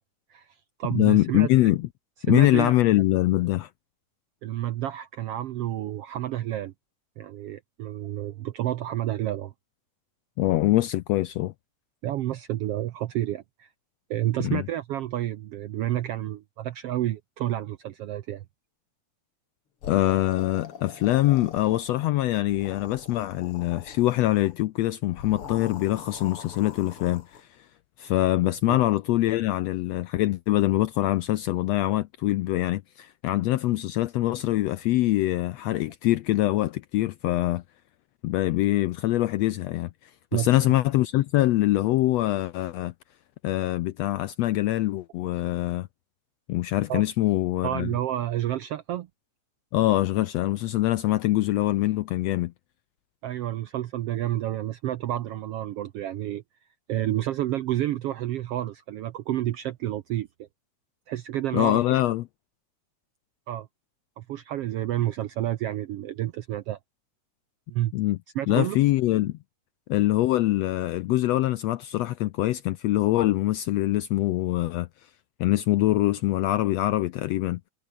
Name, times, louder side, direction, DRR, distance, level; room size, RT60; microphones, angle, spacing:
voice 1, 0.3-1.5 2.3-2.7 4.4-6.7 7.2-9.5 12.0-13.7 14.1-18.4 28.7-28.8 40.3-40.5 46.9-47.0 47.6-49.1 53.2-56.4 56.9-60.5 61.1-62.0 63.5-63.7 64.2-66.8 67.7-67.9 68.3-68.8, right 13 dB, 75° right, 1.4 m, -30 dB
voice 2, 0.9-1.9 2.2-3.7 10.4-11.5 14.4-14.6 19.9-27.5 28.0-37.6 38.2-42.9 43.4-45.9 46.5-47.9 49.7-52.5 61.5-62.3 67.9-68.2 68.5-69.4 69.9-74.9 75.4-77.6, left 16 dB, 80° left, 1.5 m, -24 dB
sound 1, 19.8-22.1 22.4-24.6 25.1-27.4, left 7 dB, 50° left, 2.8 m, -43 dB
omnidirectional pair, 3.6 m